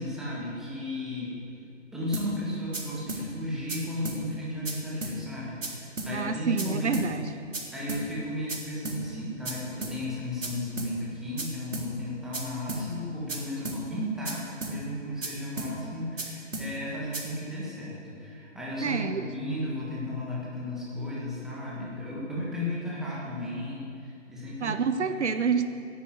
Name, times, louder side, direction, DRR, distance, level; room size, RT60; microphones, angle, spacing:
voice 1, 0.0-1.4 1.9-7.1 7.7-24.9 25.4-25.5, left 1 dB, ahead, -6 dB, 1.4 m, -34 dB
sound 1, 2.1-2.3 2.7-2.8 3.1-3.2 3.7-3.8 4.1-4.2 4.7-4.8 5.0-5.2 5.6-5.7 6.0-6.1 6.6-6.7 6.9-7.1 7.5-7.6 7.9-8.0 8.5-8.6 8.9-9.0 9.5-9.6 9.8-10.0 10.4-10.5 10.8-10.9 11.4-11.5 11.7-11.9 12.3-12.4 12.7-12.8 13.3-13.4 13.7-13.8 14.3-14.4 14.6-14.8 15.2-15.3 15.6-15.7 16.2-16.3 16.5-16.7 17.1-17.2, right 2 dB, 90° right, 3.6 m, -33 dB
voice 2, 6.1-7.3 18.8-19.3 24.6-25.7, right 6 dB, 65° right, 10 dB, 0.9 m, -28 dB
12.5 x 10.5 x 7.9 m, 2.5 s
hypercardioid pair, 160°, 37 cm